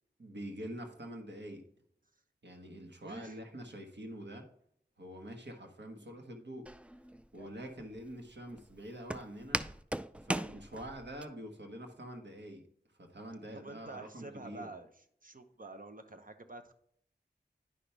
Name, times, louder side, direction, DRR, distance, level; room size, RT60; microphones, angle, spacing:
voice 1, 0.2-1.6 2.4-4.5 5.0-6.7 7.3-9.6 10.2-12.6 13.0-14.7, right 1 dB, 90° right, 3 dB, 1.5 m, -45 dB
voice 2, 3.0-3.4 13.5-16.7, right 2 dB, 50° right, 7 dB, 1.0 m, -48 dB
Walk footsteps, 6.7-11.3, right 1 dB, 5° right, 0.3 m, -39 dB
9.8 x 5.8 x 3.4 m, 0.66 s
wide cardioid pair, 45°, 18 cm